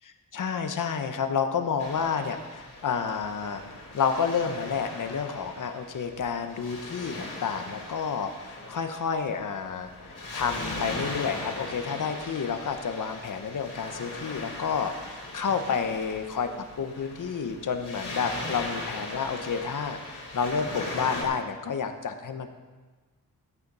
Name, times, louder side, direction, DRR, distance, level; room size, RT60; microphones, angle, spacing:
voice 1, 0.3-3.6 3.9-16.5 16.8-22.5, left 6 dB, 60° left, 7 dB, 1.0 m, -30 dB
Waves surf, 1.8-21.2, left 2 dB, 40° left, 3.8 m, -39 dB
12.5 x 8.6 x 5.5 m, 1.3 s
cardioid pair, 80°, 35 cm